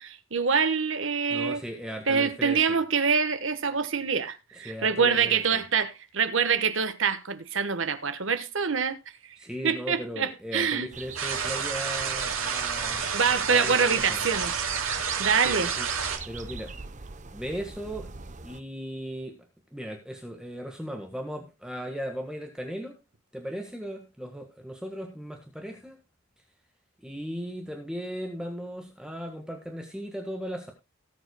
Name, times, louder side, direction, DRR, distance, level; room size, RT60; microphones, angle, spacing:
voice 1, 0.0-1.6 2.1-9.0 9.6-10.9 13.1-14.5 15.2-15.7, right 6 dB, 65° right, 1.2 m, -25 dB
voice 2, 1.3-2.6 4.5-5.6 9.4-14.2 15.4-15.9 16.3-16.7 17.3-18.1 18.4-19.4 19.7-23.0 23.3-26.0 27.0-30.7, equal, 5° right, 1.5 m, -37 dB
sound 1, 10.9-18.6, right 5 dB, 35° right, 0.7 m, -40 dB
sound 2, 11.2-16.2, right 6 dB, 80° right, 2.6 m, -30 dB
18.5 x 7.9 x 2.2 m
head